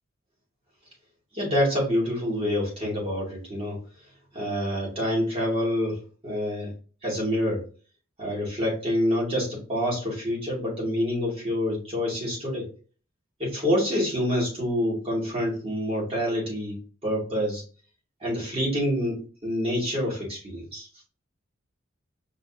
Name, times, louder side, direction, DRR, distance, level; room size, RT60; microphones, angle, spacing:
voice 1, 1.3-3.8 4.3-6.7 7.0-7.6 8.2-12.7 13.4-17.6 18.2-20.9, equal, 30° right, -4 dB, 2.2 m, -27 dB
5.2 x 3.1 x 2.7 m, 0.38 s
head